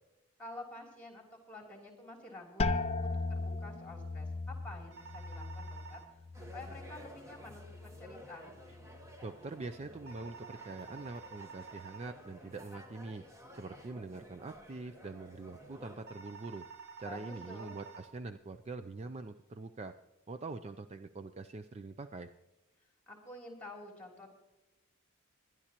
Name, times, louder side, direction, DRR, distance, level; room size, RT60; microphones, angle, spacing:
voice 1, 0.4-6.0 6.3-8.5 17.0-17.7 23.1-24.3, left 2 dB, 5° left, 0 dB, 3.1 m, -49 dB
sound 1, 2.6-8.2 8.5-9.2 9.8-10.2, left 3 dB, 30° left, 0.5 m, -38 dB
sound 2, 4.9-6.1 10.1-12.1 16.1-18.1, right 5 dB, 60° right, 1.5 m, -50 dB
sound 3, 6.3-16.1, equal, 15° right, 1.2 m, -54 dB
voice 2, 9.2-13.2 13.5-16.6 17.0-19.9 20.3-22.3, right 3 dB, 30° right, 9 dB, 0.4 m, -44 dB
22.0 x 11.0 x 2.9 m, 1.0 s
head